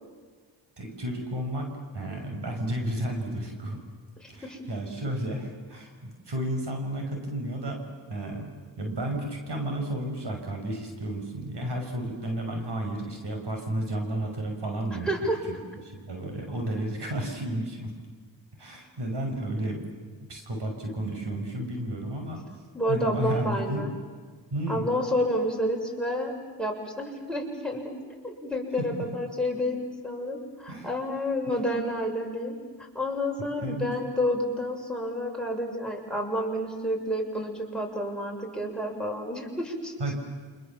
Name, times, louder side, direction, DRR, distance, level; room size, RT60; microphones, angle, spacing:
voice 1, 0.8-1.7 1.9-3.8 4.3-5.9 6.3-7.8 8.1-8.5 8.8-15.1 15.8-17.9 18.6-19.8 20.3-22.4 22.9-23.8 24.5-24.9 29.0-29.1 30.7-30.9 33.6-33.9 40.0-40.1, right 1 dB, 60° right, 3 dB, 6.3 m, -32 dB
voice 2, 4.2-4.6 15.0-15.4 22.7-23.9 24.7-26.3 26.6-28.0 28.2-39.9, equal, ahead, 2 dB, 6.8 m, -30 dB
29.0 x 26.0 x 7.4 m, 1.5 s
cardioid pair, 50°, 47 cm